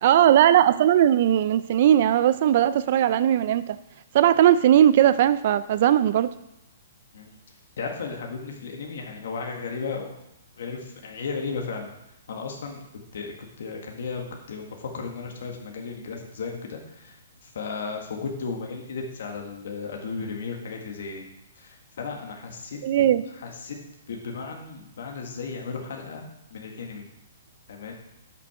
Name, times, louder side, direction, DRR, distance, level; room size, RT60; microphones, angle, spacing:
voice 1, 0.0-3.8 4.1-6.3 22.8-23.2, right 11 dB, 40° right, 14 dB, 0.4 m, -18 dB
voice 2, 7.8-10.1 10.6-11.9 12.3-12.8 13.1-17.2 17.5-21.3 21.6-22.8 23.1-23.8 24.1-27.0 27.7-27.9, left 4 dB, 60° left, 2 dB, 1.7 m, -35 dB
12.5 x 6.1 x 4.9 m, 0.85 s
hypercardioid pair, 170°, 0 cm